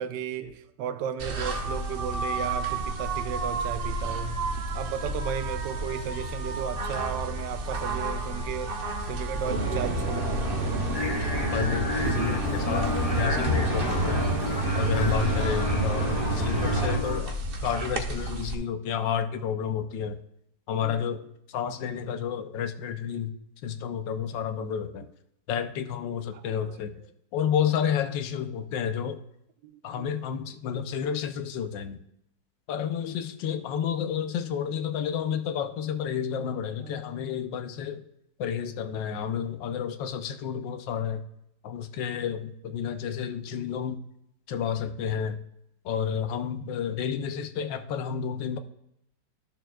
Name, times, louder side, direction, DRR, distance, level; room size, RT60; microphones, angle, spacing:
voice 1, 0.0-4.5 4.7-8.8 9.1-10.6 20.8-21.0 26.3-26.8 29.6-30.1, right 9 dB, 85° right, 1.3 m, -34 dB
sound 1, 1.2-18.5, right 2 dB, 50° right, 0.7 m, -32 dB
sound 2, 9.4-17.0, right 1 dB, 30° right, 1.6 m, -28 dB
Singing, 10.9-17.2, left 2 dB, 20° left, 1.4 m, -33 dB
voice 2, 11.5-14.3 14.7-20.2 20.7-23.3 23.6-25.1 25.5-26.9 27.3-29.2 29.8-32.0 32.7-38.0 38.4-41.2 41.6-44.0 44.5-45.4 45.8-48.6, left 8 dB, 85° left, 1.4 m, -30 dB
12.5 x 6.8 x 2.3 m
omnidirectional pair, 1.9 m